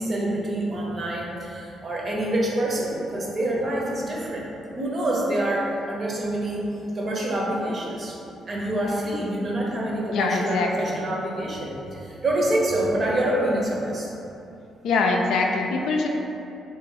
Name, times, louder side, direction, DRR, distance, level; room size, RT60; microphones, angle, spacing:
voice 1, 0.0-4.5 4.7-6.7 6.9-8.1 8.5-14.1, right 1 dB, 45° right, -3 dB, 0.8 m, -26 dB
voice 2, 10.1-10.9 14.8-16.1, left 3 dB, 80° left, 1 dB, 0.4 m, -23 dB
3.2 x 2.7 x 3.9 m, 2.8 s
cardioid pair, 90°, 0 cm